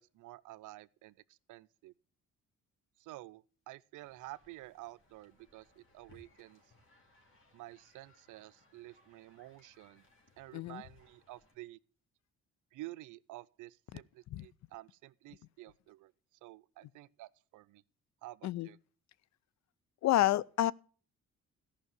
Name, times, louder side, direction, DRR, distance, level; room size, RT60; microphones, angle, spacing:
voice 1, 0.0-1.9 3.0-6.6 7.5-10.1 10.4-11.8 12.7-16.1 16.4-17.8 18.2-18.8, right 17 dB, 85° right, 0.5 m, -51 dB
sound 1, 4.0-11.5, left 2 dB, 40° left, 3.3 m, -67 dB
voice 2, 20.0-20.7, left 13 dB, 65° left, 0.5 m, -29 dB
14.0 x 5.7 x 8.0 m
cardioid pair, 90°, 30 cm